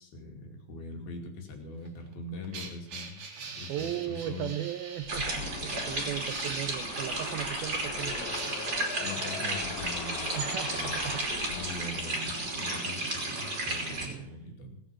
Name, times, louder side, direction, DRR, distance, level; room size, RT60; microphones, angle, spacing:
voice 1, 0.0-4.5 9.0-10.3 10.7-14.8, left 2 dB, 60° left, 2 dB, 4.1 m, -42 dB
sound 1, 1.8-5.3 6.1-6.9 8.0-9.0 9.7-9.8, right 5 dB, 45° right, 2.7 m, -43 dB
voice 2, 3.7-8.6 10.3-11.2 14.1-14.4, right 12 dB, 80° right, 11 dB, 2.1 m, -37 dB
sound 2, 5.0-12.2, left 8 dB, 80° left, 1.7 m, -42 dB
sound 3, 5.1-14.1, right 2 dB, 25° right, 3.0 m, -33 dB
18.0 x 8.8 x 7.5 m, 0.71 s
omnidirectional pair, 5.0 m